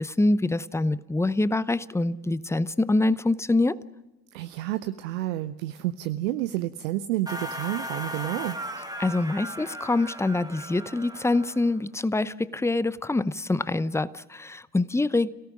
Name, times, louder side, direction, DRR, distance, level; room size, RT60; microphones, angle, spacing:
voice 1, 0.0-3.8 9.0-15.3, left 2 dB, 5° left, 18 dB, 0.7 m, -25 dB
voice 2, 4.3-8.6, right 15 dB, 70° right, 12 dB, 0.7 m, -30 dB
sound 1, 7.3-11.8, equal, 10° right, 2.0 m, -37 dB
29.0 x 17.5 x 6.2 m, 1.1 s
figure-of-eight pair, 45°, 42 cm